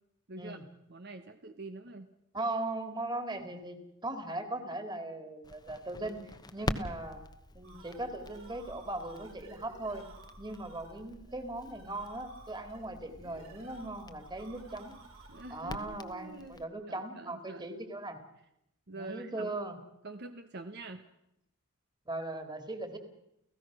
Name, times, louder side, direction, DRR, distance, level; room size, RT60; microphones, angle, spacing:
voice 1, 0.3-0.6 0.9-2.1 15.3-17.8 18.9-19.5 20.0-21.0, right 2 dB, 50° right, 7 dB, 1.1 m, -46 dB
voice 2, 2.3-7.2 7.5-10.0 10.4-14.9 15.5-18.2 18.9-19.8 22.1-23.0, right 2 dB, 20° right, 7 dB, 2.4 m, -39 dB
Crackle, 5.4-16.6, left 1 dB, 20° left, 1.1 m, -45 dB
sound 1, 7.6-15.9, right 3 dB, 70° right, 4.9 m, -56 dB
30.0 x 16.0 x 6.2 m, 0.82 s
head